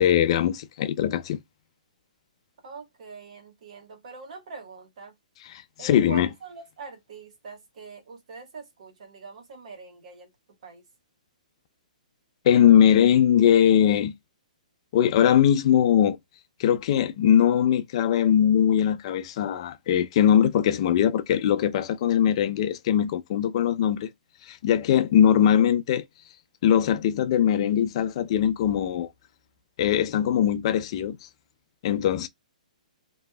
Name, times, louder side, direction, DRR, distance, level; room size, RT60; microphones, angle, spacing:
voice 1, 0.0-1.4 5.8-6.3 12.5-14.1 14.9-16.2 16.6-24.1 24.5-26.0 26.6-29.1 29.8-31.2 31.8-32.3, left 9 dB, 45° left, 0.5 m, -21 dB
voice 2, 2.6-5.1 5.8-10.3 10.6-10.9, right 4 dB, 60° right, 1.4 m, -43 dB
2.9 x 2.6 x 2.3 m
hypercardioid pair, 145°, 4 cm